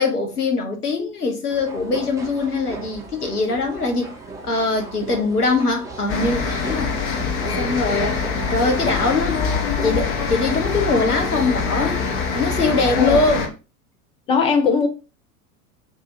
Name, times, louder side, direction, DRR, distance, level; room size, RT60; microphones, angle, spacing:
voice 1, 0.0-4.1 4.4-6.9 7.6-9.4 9.8-12.1 12.3-13.5, left 3 dB, 85° left, 1.0 m, -22 dB
sound 1, 1.5-10.0, right 3 dB, 5° right, 0.7 m, -38 dB
sound 2, 6.1-13.5, left 5 dB, 45° left, 1.0 m, -24 dB
voice 2, 14.3-14.9, left 5 dB, 15° left, 0.4 m, -18 dB
4.7 x 2.7 x 2.8 m
figure-of-eight pair, 80°, 45 cm